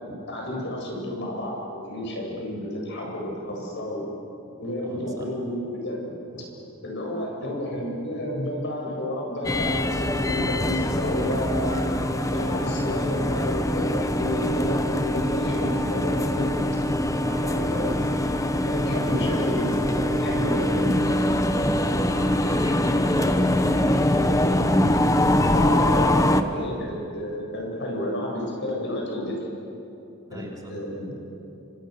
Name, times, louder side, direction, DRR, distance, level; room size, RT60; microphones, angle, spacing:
voice 1, 0.3-4.0 4.6-6.0 6.3-6.4 6.8-11.9 12.3-16.6 17.4-18.0 18.6-21.0 25.5-29.4 30.3-31.2, left 1 dB, 55° left, -1 dB, 8.0 m, -31 dB
voice 2, 4.8-5.3 17.2-17.7 18.8-19.4 22.1-24.7 30.3-30.7, equal, 15° right, -1 dB, 2.8 m, -38 dB
sound 1, 9.4-26.4, left 1 dB, 15° left, 1.0 m, -23 dB
30.0 x 26.5 x 6.8 m, 2.9 s
head